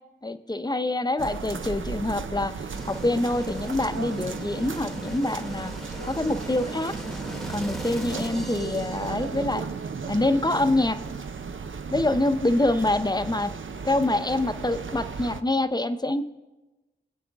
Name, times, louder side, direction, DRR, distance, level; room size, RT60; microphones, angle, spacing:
voice 1, 0.2-2.5 2.9-5.7 6.0-6.9 7.5-9.6 10.1-11.0 11.9-13.5 13.8-16.2, left 2 dB, 20° left, 10 dB, 0.7 m, -25 dB
sound 1, 1.2-15.4, right 5 dB, 75° right, 0.6 m, -35 dB
sound 2, 2.7-9.6, equal, ahead, 1.1 m, -39 dB
23.0 x 8.4 x 3.5 m, 1.1 s
wide cardioid pair, 50°, 20 cm